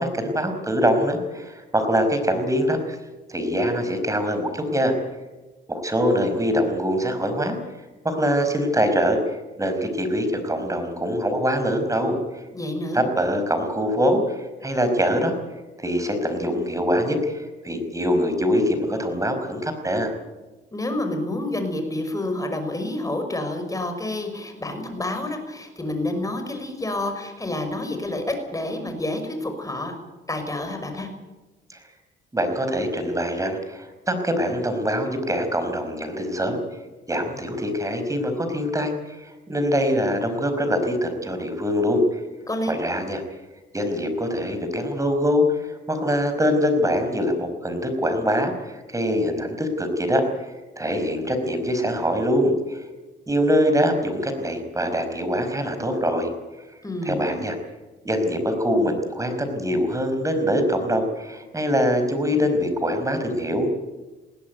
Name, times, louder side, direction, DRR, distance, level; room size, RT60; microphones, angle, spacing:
voice 1, 0.0-3.0 3.3-4.9 5.7-12.4 12.9-15.3 15.8-20.1 31.7-31.8 32.3-36.6 37.1-42.2 42.7-43.2 43.7-52.8 53.3-56.3 57.0-57.6 58.0-63.7, equal, 15° right, 7 dB, 5.1 m, -24 dB
voice 2, 12.5-13.0 20.7-29.9 30.3-31.1 42.5-42.8 56.8-57.4, left 1 dB, 15° left, 6 dB, 6.0 m, -28 dB
21.0 x 16.5 x 9.4 m, 1.2 s
cardioid pair, 90°, 20 cm